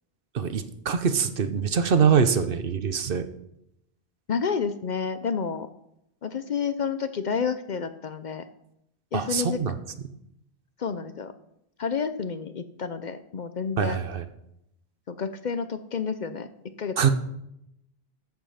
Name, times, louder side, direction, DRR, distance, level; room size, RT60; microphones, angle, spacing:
voice 1, 0.3-3.3 9.1-9.7 13.8-14.2 17.0-17.1, right 6 dB, 60° right, 10 dB, 1.0 m, -24 dB
voice 2, 4.3-5.7 6.2-8.4 9.1-9.6 10.8-11.3 11.8-14.0 15.1-16.5 16.8-17.1, left 6 dB, 55° left, 11 dB, 0.6 m, -30 dB
13.5 x 5.2 x 5.7 m, 0.80 s
omnidirectional pair, 1.1 m